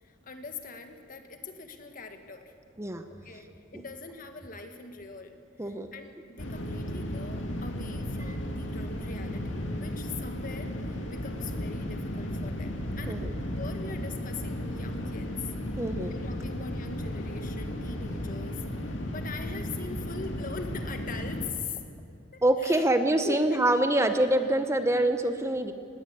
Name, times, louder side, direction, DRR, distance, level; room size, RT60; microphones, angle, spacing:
voice 1, 0.0-2.6 3.1-5.3 5.6-13.2 13.5-15.5 16.1-21.8 22.1-22.9 23.2-23.6, left 4 dB, 45° left, 6 dB, 1.7 m, -42 dB
sound 1, 6.4-21.5, equal, 85° left, 2.1 m, -34 dB
voice 2, 15.8-16.1 22.4-25.7, right 1 dB, 15° right, 8 dB, 0.8 m, -25 dB
19.5 x 17.5 x 8.5 m, 2.3 s
head